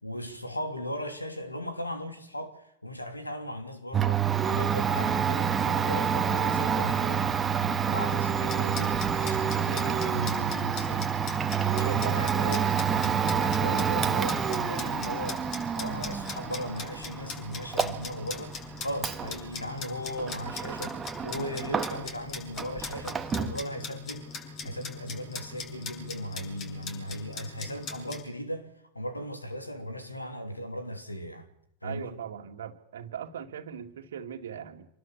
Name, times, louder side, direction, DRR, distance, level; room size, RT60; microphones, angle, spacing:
voice 1, 0.0-7.3 7.6-11.1 11.6-15.4 15.7-31.5 31.8-32.2, equal, 85° left, 3.2 m, -37 dB
Domestic sounds home sounds, 3.9-22.3 22.5-23.6, right 7 dB, 20° right, 1.7 m, -28 dB
sound 1, 8.5-28.2, left 4 dB, 35° left, 6.2 m, -41 dB
voice 2, 11.7-12.2 31.8-34.9, right 8 dB, 60° right, 2.3 m, -39 dB
26.5 x 19.5 x 7.2 m
figure-of-eight pair, 90°, 0 cm